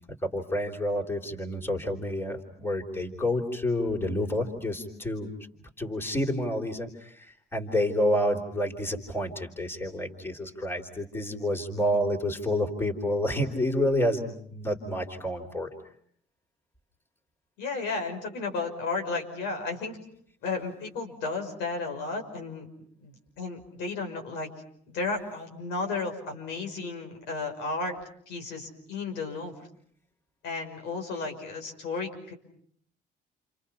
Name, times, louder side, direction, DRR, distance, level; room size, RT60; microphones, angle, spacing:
voice 1, 0.2-5.3 5.8-15.7, left 1 dB, 15° left, 1 dB, 3.8 m, -29 dB
voice 2, 17.6-20.0 20.4-22.7 23.0-24.5 24.9-28.0 28.3-29.5 30.4-32.3, left 3 dB, 85° left, 4 dB, 6.0 m, -33 dB
29.5 x 28.0 x 5.8 m, 0.62 s
cardioid pair, 110°, 17 cm